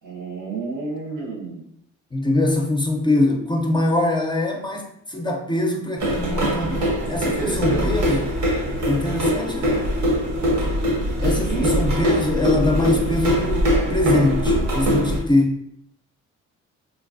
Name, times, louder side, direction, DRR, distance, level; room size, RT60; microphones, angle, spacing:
voice 1, 0.0-1.6 6.7-6.8 7.2-8.1 11.2-11.8, right 3 dB, 85° right, -2 dB, 1.2 m, -30 dB
voice 2, 2.1-6.8 7.1-8.3 8.8-9.8 11.2-15.6, left 2 dB, 15° left, 1 dB, 0.4 m, -23 dB
sound 1, 6.0-15.2, equal, 65° right, 0.9 m, -22 dB
3.9 x 2.2 x 2.5 m, 0.70 s
cardioid pair, 90°, 30 cm